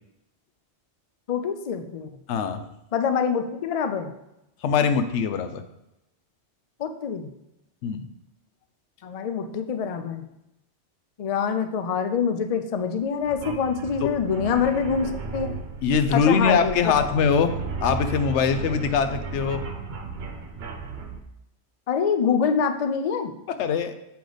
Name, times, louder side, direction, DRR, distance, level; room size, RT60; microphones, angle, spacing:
voice 1, 1.3-2.1 2.9-4.1 6.8-7.3 9.0-10.2 11.2-15.5 16.1-17.1 21.9-23.3, left 6 dB, 50° left, 8 dB, 0.4 m, -25 dB
voice 2, 2.3-2.6 4.6-5.6 7.8-8.1 14.0-14.1 15.8-17.5 17.8-19.7 23.6-23.9, left 6 dB, 85° left, 9 dB, 0.9 m, -22 dB
sound 1, 13.2-21.2, right 4 dB, 65° right, 1.1 m, -34 dB
6.9 x 5.0 x 3.9 m, 0.88 s
omnidirectional pair, 1.2 m